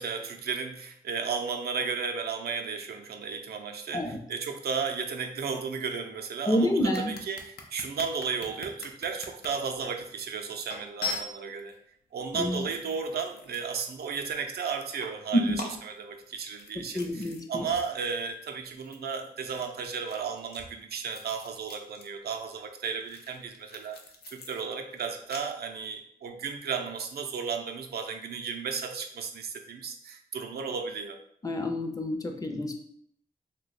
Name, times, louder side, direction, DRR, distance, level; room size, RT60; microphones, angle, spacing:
voice 1, 0.0-11.7 12.1-24.0 24.3-31.2, right 5 dB, 90° right, 5 dB, 0.4 m, -34 dB
voice 2, 6.4-7.1 12.3-12.7 15.3-15.6 16.8-17.6 31.4-32.7, equal, 20° left, 4 dB, 0.5 m, -28 dB
sound 1, 6.9-9.5 10.1-10.2 10.7-11.8 12.5-14.2 14.5-15.2 15.6-17.4 17.7-17.9 18.2-22.1 22.3-25.4, left 3 dB, 85° left, 0.5 m, -42 dB
2.7 x 2.2 x 4.0 m, 0.67 s
cardioid pair, 85°, 16 cm